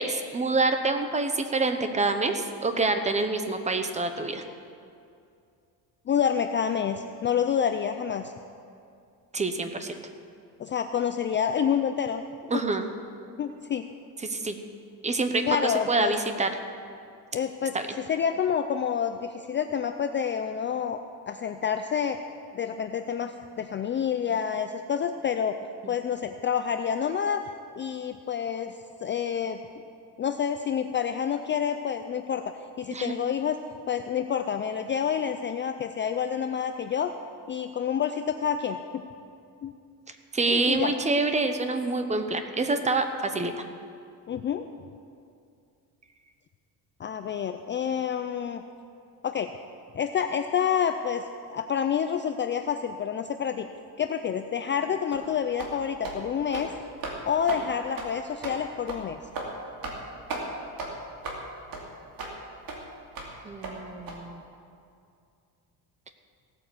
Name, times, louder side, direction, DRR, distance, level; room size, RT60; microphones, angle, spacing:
voice 1, 0.0-4.4 9.3-10.0 12.5-12.9 14.2-14.6 15.0-16.5 17.7-17.9 32.9-33.1 40.3-43.5 63.4-64.4, right 3 dB, 15° right, 7 dB, 0.8 m, -26 dB
voice 2, 6.1-8.3 10.6-12.2 12.5-12.6 13.4-13.9 15.5-16.1 17.3-21.0 21.3-22.2 22.5-25.6 25.9-27.4 27.8-29.6 30.2-33.6 33.9-37.1 37.5-39.0 39.6-39.7 40.5-40.9 44.3-44.6 47.0-48.6 49.2-49.5 49.9-53.7 54.0-56.7 57.3-59.2, left 8 dB, 30° left, 7 dB, 0.4 m, -28 dB
sound 1, 55.1-55.3 55.6-55.8 56.0-56.2 56.5-56.7 57.0-57.2 57.5-57.6 58.0-58.1 58.4-58.6 58.9-59.0 59.3-59.5 59.8-60.0 60.3-60.4 60.8-60.9 61.2-61.4 61.7-61.8 62.2-62.3 62.7-62.8 63.2-63.3 63.6-63.7 64.1-64.2, right 3 dB, 55° right, 2.6 m, -35 dB
16.5 x 9.0 x 6.9 m, 2.4 s
cardioid pair, 155°, 40 cm